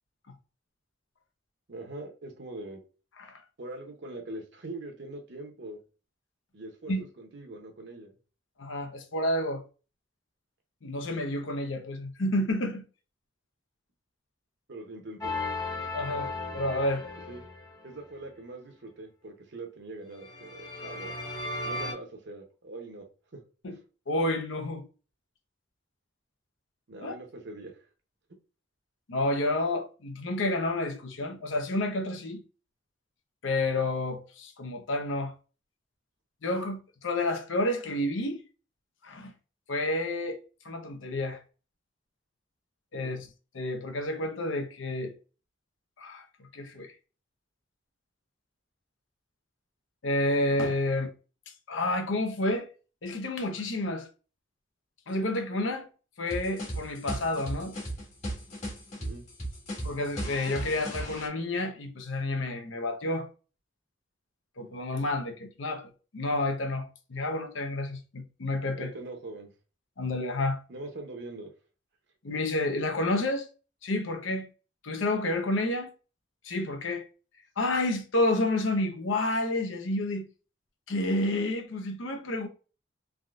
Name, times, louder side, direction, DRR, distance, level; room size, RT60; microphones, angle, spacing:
voice 1, 1.7-2.8 3.6-5.8 6.5-8.1 14.7-15.3 17.3-17.4 17.8-21.2 21.6-23.0 23.3-23.4 26.9-27.9 42.9-43.1 59.0-59.2 68.7-69.5 70.7-71.5, right 2 dB, 60° right, 0.7 m, -42 dB
voice 2, 8.6-9.6 10.8-12.8 15.9-17.1 23.6-23.8 24.1-24.8 27.0-27.1 29.1-32.4 33.4-35.3 36.4-38.4 39.0-39.3 39.7-40.4 40.6-41.4 42.9-43.3 43.5-45.1 46.0-46.9 50.0-51.1 51.7-52.7 53.0-54.1 55.1-55.9 56.2-57.8 59.8-63.3 64.6-68.9 70.0-70.6 72.2-73.5 73.8-74.5 74.8-75.9 76.4-77.0 77.6-80.2 80.9-82.5, left 2 dB, 80° left, 0.7 m, -30 dB
sound 1, 15.2-17.9 20.2-21.9, left 2 dB, 20° left, 0.8 m, -36 dB
sound 2, 56.3-61.3, right 1 dB, 35° left, 1.4 m, -36 dB
3.5 x 2.6 x 2.4 m
head